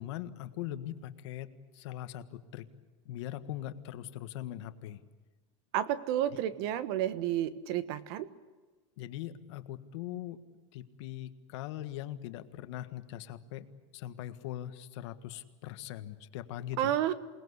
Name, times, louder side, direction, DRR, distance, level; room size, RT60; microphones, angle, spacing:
voice 1, 0.0-1.5 1.7-2.7 3.0-5.0 6.3-6.4 9.0-10.4 10.7-13.6 13.9-16.9, left 12 dB, 65° left, 10 dB, 1.6 m, -41 dB
voice 2, 5.7-8.3 16.8-17.1, right 11 dB, 55° right, 14 dB, 1.4 m, -31 dB
28.0 x 19.5 x 8.2 m, 1.3 s
supercardioid pair, 165°, 16 cm